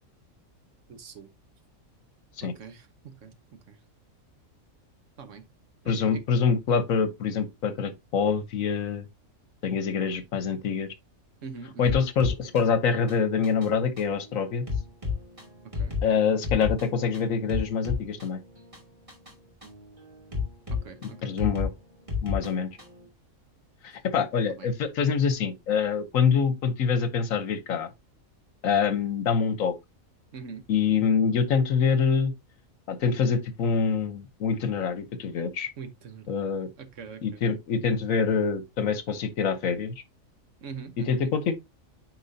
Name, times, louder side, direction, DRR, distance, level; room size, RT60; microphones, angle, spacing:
voice 1, 0.9-1.3 2.4-3.8 5.2-5.5 5.8-6.2 11.4-12.0 15.6-16.0 20.7-21.3 24.6-24.7 30.3-30.6 35.8-36.3 36.8-37.4 40.6-41.2, right 5 dB, 65° right, 1.3 m, -43 dB
voice 2, 5.9-9.1 9.6-10.9 11.8-14.6 16.0-18.4 21.0-21.7 22.2-22.7 23.8-27.9 28.6-29.7 30.7-32.3 32.9-35.7 36.3-36.7 37.2-39.9 41.0-41.6, left 6 dB, 75° left, 1.3 m, -25 dB
sound 1, 11.8-23.1, left 5 dB, 25° right, 2.9 m, -34 dB
9.4 x 4.5 x 2.7 m
omnidirectional pair, 1.4 m